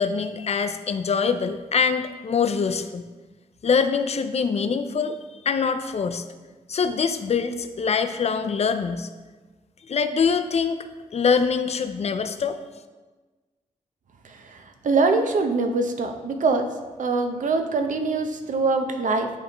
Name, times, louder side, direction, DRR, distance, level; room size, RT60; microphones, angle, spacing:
voice 1, 0.0-3.1 3.6-5.2 5.4-6.2 6.7-9.1 9.9-10.8 11.1-12.6, left 5 dB, 50° left, 9 dB, 0.4 m, -24 dB
voice 2, 14.2-16.7 17.0-19.3, right 3 dB, 70° right, 6 dB, 0.7 m, -23 dB
10.5 x 3.5 x 3.0 m, 1.3 s
cardioid pair, 80°, 14 cm